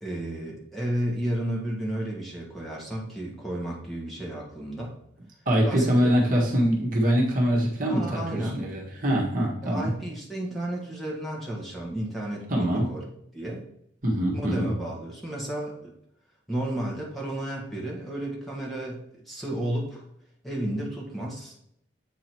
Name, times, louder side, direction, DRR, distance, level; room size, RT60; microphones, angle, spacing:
voice 1, 0.0-4.9 5.6-6.1 7.9-8.6 9.6-13.0 13.3-13.7 14.3-15.9 16.5-20.0 20.4-21.5, right 1 dB, ahead, -4 dB, 1.5 m, -32 dB
voice 2, 5.4-9.9 12.5-12.9 14.0-14.7, equal, 45° right, -1 dB, 1.5 m, -24 dB
8.0 x 3.9 x 4.5 m, 0.72 s
head